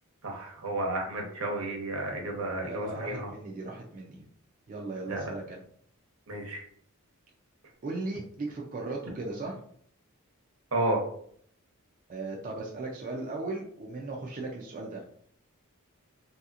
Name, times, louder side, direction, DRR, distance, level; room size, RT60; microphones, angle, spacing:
voice 1, 0.2-3.3 5.1-5.3 6.3-6.6 10.7-11.0, right 2 dB, 75° right, 0 dB, 0.9 m, -32 dB
voice 2, 2.6-4.2 4.7-5.6 7.8-9.6 12.1-15.0, right 3 dB, 40° right, -2 dB, 0.4 m, -37 dB
3.1 x 2.8 x 2.4 m, 0.63 s
head